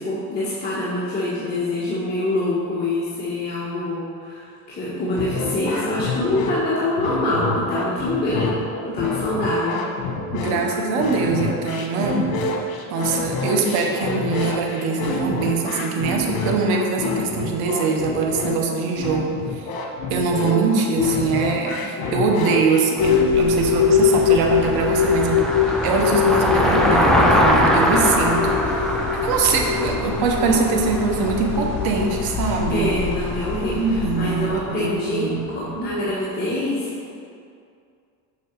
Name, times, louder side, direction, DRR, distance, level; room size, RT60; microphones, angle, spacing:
voice 1, 0.0-8.5 8.8-9.8 20.4-20.7 30.4-30.7 32.7-36.9, left 2 dB, 25° left, -9 dB, 1.4 m, -25 dB
sound 1, 5.2-23.3, left 3 dB, 75° left, 1.2 m, -27 dB
voice 2, 10.3-12.3 12.9-19.7 20.1-25.4 25.8-33.0 33.7-35.7, right 4 dB, 85° right, 1 dB, 1.2 m, -23 dB
sound 2, 23.0-34.6, left 7 dB, 45° left, 1.0 m, -23 dB
Car passing by, 23.4-35.7, equal, ahead, 0.6 m, -23 dB
7.1 x 6.0 x 4.6 m, 2.4 s
cardioid pair, 135°, 36 cm